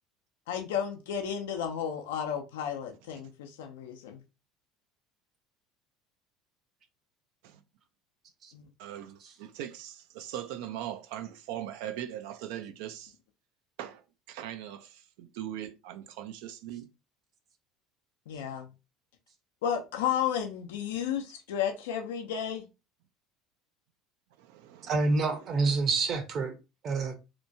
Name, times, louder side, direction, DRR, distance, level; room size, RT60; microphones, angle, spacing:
voice 1, 0.5-4.2 8.5-8.7 18.3-18.7 19.6-22.7, left 8 dB, 85° left, 0.5 m, -33 dB
voice 2, 8.8-13.1 13.8-16.9 24.4-25.0, right 11 dB, 75° right, 0.4 m, -40 dB
voice 3, 24.9-26.5 26.8-27.1, right 3 dB, 50° right, 0.8 m, -27 dB
2.9 x 2.2 x 2.7 m
supercardioid pair, 90°, 0 cm